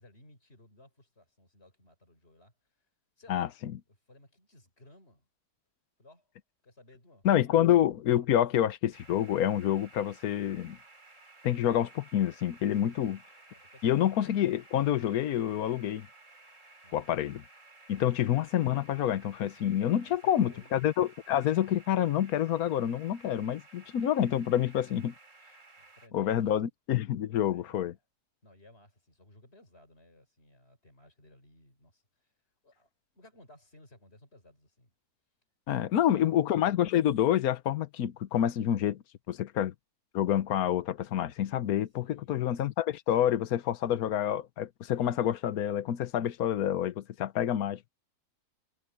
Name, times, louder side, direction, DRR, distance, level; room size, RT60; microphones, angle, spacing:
voice 1, 0.0-2.9 3.2-3.5 3.9-5.3 6.0-6.3 6.6-7.7 12.8-13.9 16.8-17.2 17.9-18.2 20.0-20.7 25.8-26.5 27.5-28.0 28.4-32.3 32.6-32.9 33.1-34.9 35.8-36.4 42.0-42.4, left 1 dB, 40° left, 6.3 m, -59 dB
voice 2, 3.3-3.7 7.2-10.8 11.4-13.2 13.8-16.1 16.9-17.4 17.9-25.1 26.1-27.9 35.7-39.7 40.1-47.8, left 11 dB, 75° left, 1.3 m, -28 dB
sound 1, 8.9-26.1, right 3 dB, 55° right, 4.0 m, -56 dB
omnidirectional pair, 1.6 m